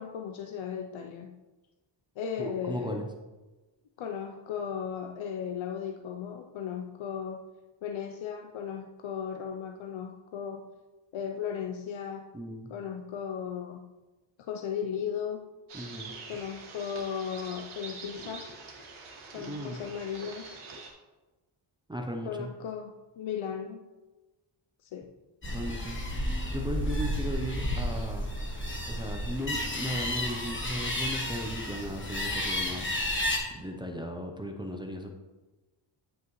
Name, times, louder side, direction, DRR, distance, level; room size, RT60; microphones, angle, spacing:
voice 1, 0.0-1.4 2.2-3.1 4.0-7.5 7.8-10.7 11.1-12.3 12.7-13.9 14.4-15.5 16.3-18.5 19.3-20.6 22.2-23.9 24.8-25.2, left 7 dB, 70° left, 4 dB, 0.6 m, -36 dB
voice 2, 2.4-3.1 12.3-12.7 15.7-16.1 19.3-19.8 21.9-22.5 25.5-26.0 26.5-28.3 28.9-32.9 33.5-35.1, equal, 10° right, 2 dB, 0.5 m, -36 dB
sound 1, 15.7-20.9, right 4 dB, 75° right, 1.6 m, -45 dB
sound 2, 25.4-33.4, left 1 dB, 25° left, 1.2 m, -32 dB
9.6 x 5.6 x 3.0 m, 1.1 s
wide cardioid pair, 155°, 49 cm